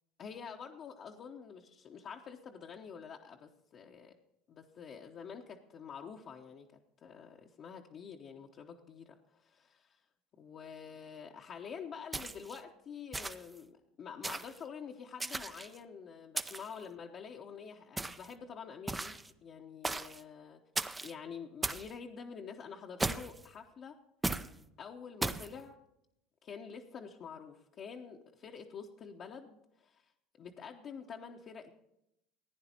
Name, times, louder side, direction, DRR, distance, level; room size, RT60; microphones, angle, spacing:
voice 1, 0.2-4.1 4.5-6.7 7.0-10.0 10.4-20.6 21.0-24.0 24.8-25.8 26.4-30.1 30.4-31.7, left 6 dB, 45° left, -1 dB, 0.9 m, -47 dB
sound 1, 12.1-12.6 13.1-13.6 14.2-14.6 15.2-15.8 16.4-16.8 18.0-18.3 18.9-19.3 19.8-20.2 20.8-21.1 21.6-21.9 23.0-23.5 24.2-24.5 25.2-25.5, right 2 dB, 15° right, 0.6 m, -36 dB
15.5 x 9.7 x 4.4 m, 0.82 s
hypercardioid pair, 90°, 0 cm